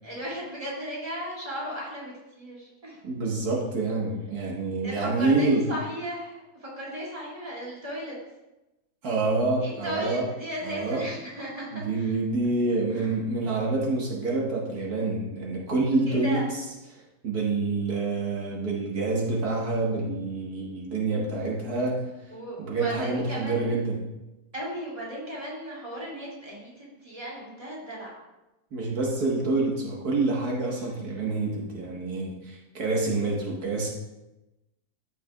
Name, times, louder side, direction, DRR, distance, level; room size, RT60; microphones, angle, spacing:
voice 1, 0.0-3.0 4.8-8.2 9.6-12.1 12.9-13.1 16.1-16.5 22.3-23.8 24.5-28.1 30.7-31.1, equal, 25° right, -5 dB, 2.8 m, -36 dB
voice 2, 3.0-5.7 9.0-10.2 10.6-11.0 11.7-16.5 16.9-22.1 22.6-24.0 28.7-33.9, right 3 dB, 85° right, -3 dB, 2.0 m, -27 dB
14.0 x 6.0 x 2.4 m, 0.99 s
omnidirectional pair, 1.6 m